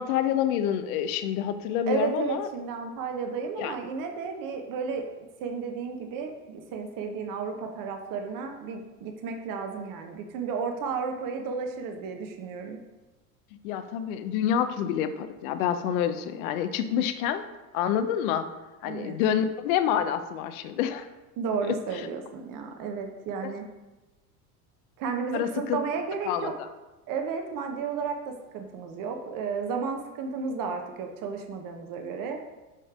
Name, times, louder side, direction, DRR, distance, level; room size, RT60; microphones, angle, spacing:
voice 1, 0.0-2.5 3.6-3.7 13.6-17.4 17.7-18.5 18.8-21.1 21.6-21.8 25.3-25.8 26.3-26.5, left 9 dB, 70° left, 10 dB, 0.7 m, -27 dB
voice 2, 1.9-5.0 5.4-12.8 18.9-19.2 21.4-23.7 25.0-26.5 27.1-32.4, right 5 dB, 45° right, 4 dB, 0.9 m, -33 dB
7.7 x 3.3 x 3.7 m, 1.1 s
hypercardioid pair, 90°, 44 cm